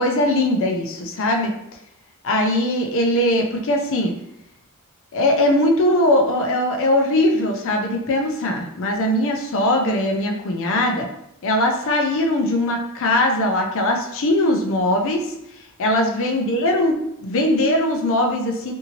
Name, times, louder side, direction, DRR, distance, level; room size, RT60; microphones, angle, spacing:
voice 1, 0.0-1.5 2.2-4.1 5.1-11.1 11.4-15.3 15.8-18.7, left 1 dB, 65° left, 2 dB, 0.5 m, -20 dB
2.7 x 2.6 x 2.8 m, 0.80 s
head